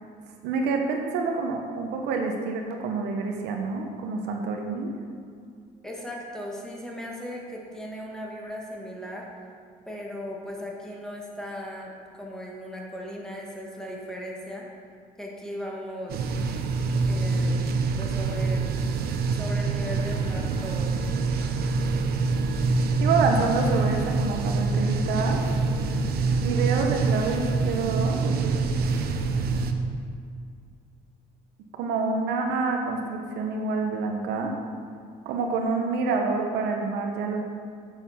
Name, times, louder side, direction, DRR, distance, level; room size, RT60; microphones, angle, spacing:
voice 1, 0.4-4.9 23.0-25.4 26.4-28.2 31.8-34.5 35.2-37.4, right 4 dB, 90° right, 2 dB, 1.1 m, -27 dB
voice 2, 5.8-9.3 9.9-14.7 15.2-16.3 17.1-17.6 18.0-18.7 19.3-21.0, equal, 5° left, -3 dB, 1.9 m, -37 dB
sound 1, 16.1-29.7, right 4 dB, 65° right, 0.8 m, -25 dB
7.6 x 7.1 x 5.8 m, 2.2 s
cardioid pair, 110°, 17 cm